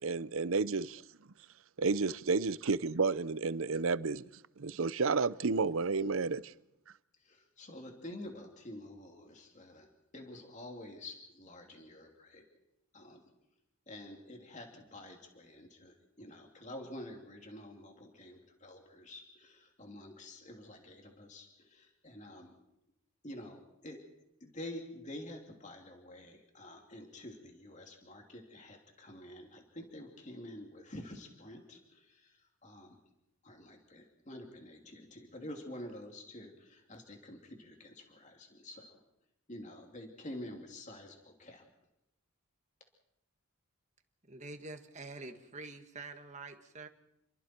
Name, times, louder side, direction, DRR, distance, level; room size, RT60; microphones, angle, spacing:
voice 1, 0.0-1.0 1.8-4.2 4.6-6.5, right 4 dB, 70° right, 0.7 m, -31 dB
voice 2, 7.2-12.4 12.9-13.2 13.9-22.6 23.2-24.0 24.4-33.0 33.4-39.0 39.5-41.6, left 1 dB, 35° left, 3.0 m, -48 dB
voice 3, 44.3-46.9, right 3 dB, 35° right, 1.9 m, -46 dB
30.0 x 23.0 x 4.6 m
head